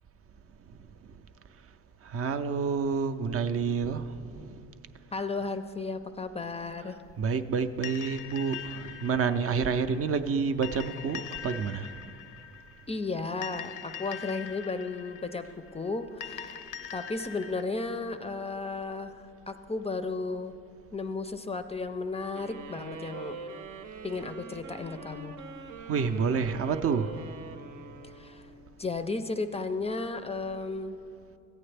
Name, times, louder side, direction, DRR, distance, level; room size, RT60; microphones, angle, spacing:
voice 1, 0.7-1.2 1.6-1.7 2.0-4.6 6.8-11.9 24.1-24.2 25.9-27.4, right 5 dB, 50° right, 0.5 m, -29 dB
voice 2, 5.1-7.0 12.9-15.5 15.7-16.6 16.9-19.2 19.5-20.5 20.9-23.4 24.0-25.3 28.0-28.5 28.8-31.0, left 3 dB, 20° left, 0.4 m, -34 dB
sound 1, 7.8-17.6, left 9 dB, 90° left, 0.5 m, -43 dB
sound 2, 22.3-28.7, right 5 dB, 90° right, 0.8 m, -44 dB
14.5 x 8.6 x 3.3 m
cardioid pair, 90°, 30 cm